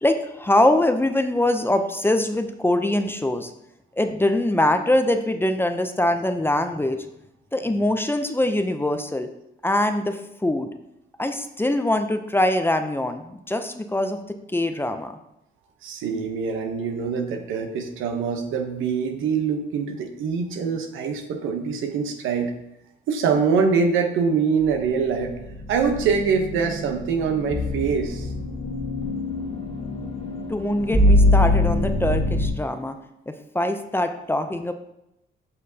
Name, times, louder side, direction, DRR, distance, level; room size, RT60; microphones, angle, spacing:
voice 1, 0.0-3.5 4.0-7.0 7.5-9.3 9.6-10.7 11.2-15.1 30.5-33.0 33.3-34.7, left 1 dB, 10° left, 7 dB, 0.5 m, -23 dB
voice 2, 15.8-22.5 23.1-25.4 25.7-28.3, right 5 dB, 85° right, 5 dB, 0.9 m, -24 dB
sound 1, 25.2-32.5, left 1 dB, 30° left, 1.5 m, -23 dB
7.5 x 5.9 x 2.8 m, 0.85 s
cardioid pair, 90°, 20 cm